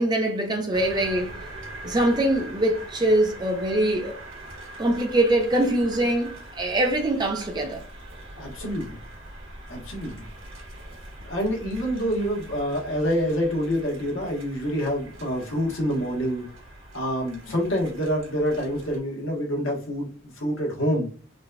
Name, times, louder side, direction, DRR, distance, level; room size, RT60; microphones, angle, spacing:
voice 1, 0.0-1.4 1.8-4.1 4.8-7.8, right 1 dB, 20° right, 0.5 m, -23 dB
sound 1, 0.7-19.0, right 1 dB, 80° right, 1.5 m, -42 dB
voice 2, 8.4-9.0 9.7-10.2 11.2-16.5 16.9-21.1, equal, 75° left, 1.2 m, -27 dB
3.8 x 2.4 x 2.2 m
head